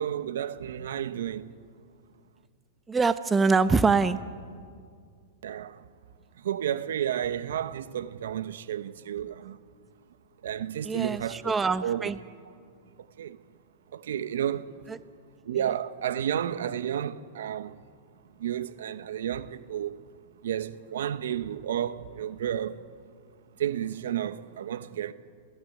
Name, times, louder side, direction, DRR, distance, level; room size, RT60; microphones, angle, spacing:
voice 1, 0.0-1.5 5.4-5.8 6.4-9.6 10.4-11.5 11.8-12.1 13.2-13.4 13.9-14.7 15.5-17.7 18.4-20.0 20.4-22.8 23.6-25.1, right 10 dB, 80° right, 1.1 m, -31 dB
voice 2, 2.9-4.2 10.8-12.2 14.9-15.0, right 4 dB, 15° right, 0.8 m, -24 dB
29.5 x 15.5 x 9.4 m
hypercardioid pair, 130°, 0 cm